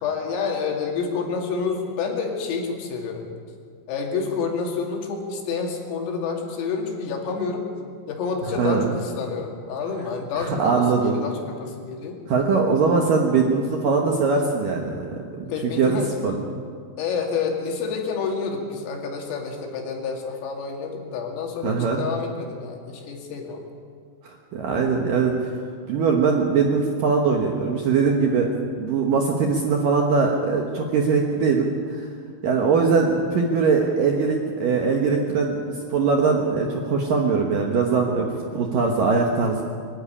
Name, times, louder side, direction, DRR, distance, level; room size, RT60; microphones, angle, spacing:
voice 1, 0.0-3.3 3.9-7.7 8.1-12.2 15.5-16.1 17.0-23.6 38.1-38.7, left 5 dB, 90° left, 1 dB, 5.1 m, -29 dB
voice 2, 10.3-11.1 12.3-15.5 15.8-15.9 16.2-16.7 21.6-22.0 24.2-25.5 25.9-28.5 28.8-32.1 32.4-38.3 38.5-39.6, right 5 dB, 65° right, 1 dB, 2.2 m, -21 dB
24.0 x 11.5 x 9.9 m, 2.1 s
omnidirectional pair, 5.8 m